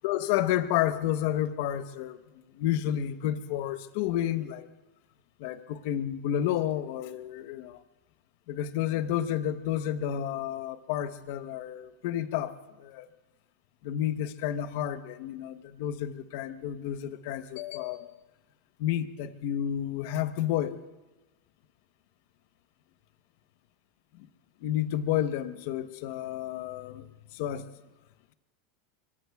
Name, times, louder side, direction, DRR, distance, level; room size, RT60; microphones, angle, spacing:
voice 1, 0.0-2.2 2.5-4.7 5.4-7.8 8.5-13.1 13.8-18.1 18.8-20.8 24.2-24.3 24.6-27.1 27.3-27.7, left 11 dB, 65° left, 11 dB, 0.9 m, -30 dB
25.5 x 23.5 x 2.4 m, 1.1 s
hypercardioid pair, 110°, 0 cm